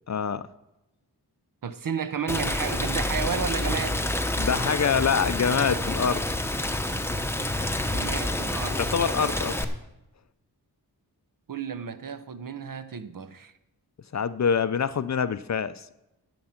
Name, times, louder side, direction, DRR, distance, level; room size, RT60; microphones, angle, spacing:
voice 1, 0.1-0.4 4.4-6.2 8.7-9.6 14.1-15.9, left 6 dB, 45° left, 0.5 m, -25 dB
voice 2, 1.6-4.1 7.9-8.8 11.5-13.5, right 7 dB, 55° right, 0.7 m, -32 dB
Rain, 2.3-9.6, left 1 dB, 5° left, 0.8 m, -28 dB
11.5 x 7.7 x 5.8 m
wide cardioid pair, 90°, 38 cm